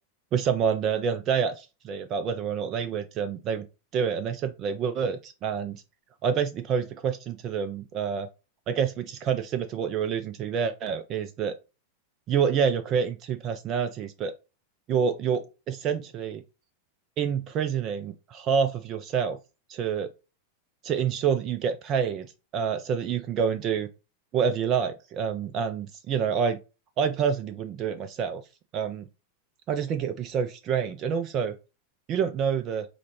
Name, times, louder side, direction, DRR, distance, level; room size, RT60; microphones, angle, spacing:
voice 1, 0.3-3.7 3.9-5.8 6.2-8.3 8.7-11.6 12.3-14.3 14.9-16.4 17.2-19.4 19.7-20.1 20.8-22.3 22.5-23.9 24.3-26.6 27.0-28.4 28.7-29.1 29.7-31.6 32.1-32.9, right 7 dB, 35° right, 0.4 m, -27 dB
4.9 x 2.2 x 3.0 m
figure-of-eight pair, 90°, 0 cm